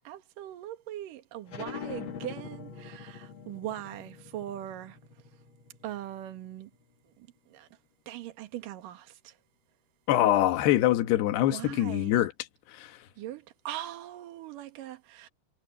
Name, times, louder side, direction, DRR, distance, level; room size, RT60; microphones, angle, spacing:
voice 1, 0.0-5.0 5.8-6.7 7.0-7.7 8.1-9.4 11.5-12.2 13.2-15.3, right 12 dB, 60° right, 2.9 m, -40 dB
sound 1, 1.5-6.7, left 7 dB, 60° left, 1.3 m, -44 dB
voice 2, 10.1-12.3 12.7-13.0, left 13 dB, 75° left, 3.4 m, -24 dB
omnidirectional pair, 4.9 m